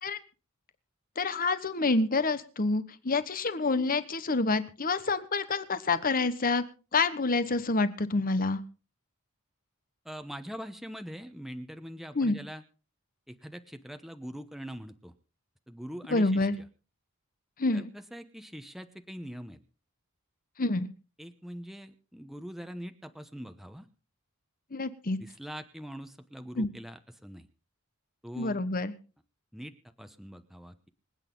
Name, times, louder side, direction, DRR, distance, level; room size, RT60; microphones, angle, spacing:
voice 1, 1.2-6.6 6.9-8.6 12.1-12.3 16.1-16.5 17.6-17.9 20.6-20.9 24.7-25.2 26.5-26.7 28.3-28.9, left 3 dB, 45° left, 13 dB, 1.2 m, -27 dB
voice 2, 10.0-12.6 13.3-15.1 15.7-16.6 17.7-19.6 21.2-23.9 25.2-27.5 28.2-28.6 29.5-30.9, equal, ahead, 8 dB, 0.9 m, -43 dB
26.0 x 8.9 x 3.9 m, 0.35 s
head